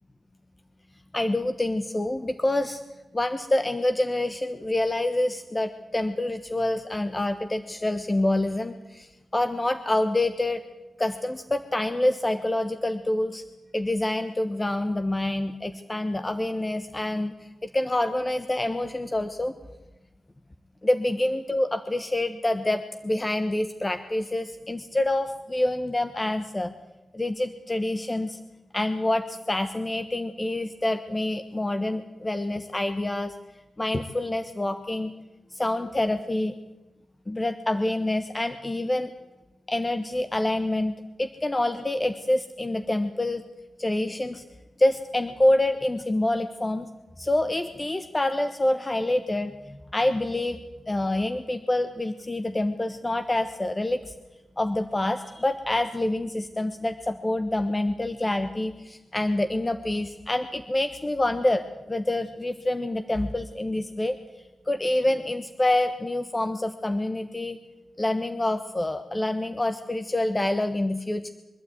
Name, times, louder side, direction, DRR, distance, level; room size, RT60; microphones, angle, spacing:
voice 1, 1.1-2.8 3.1-10.6 11.0-13.4 13.7-17.3 17.6-19.5 20.8-26.7 27.1-28.4 28.7-33.3 33.8-35.1 35.5-36.5 37.3-39.1 39.7-43.4 43.8-44.4 44.8-46.9 47.2-50.6 50.9-54.1 54.6-64.2 64.7-67.6 68.0-71.3, left 1 dB, 25° left, 8 dB, 1.2 m, -27 dB
23.5 x 12.0 x 9.3 m, 1.1 s
cardioid pair, 55°, 0 cm